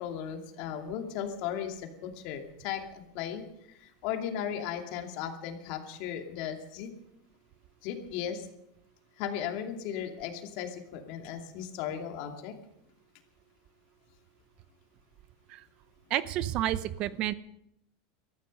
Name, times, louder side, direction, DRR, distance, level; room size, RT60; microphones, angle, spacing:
voice 1, 0.0-3.4 3.8-6.9 7.8-8.5 9.2-12.5, left 9 dB, 55° left, 4 dB, 2.5 m, -36 dB
voice 2, 16.1-17.3, right 13 dB, 45° right, 16 dB, 0.7 m, -30 dB
19.0 x 13.5 x 5.4 m, 0.78 s
supercardioid pair, 140°, 2 cm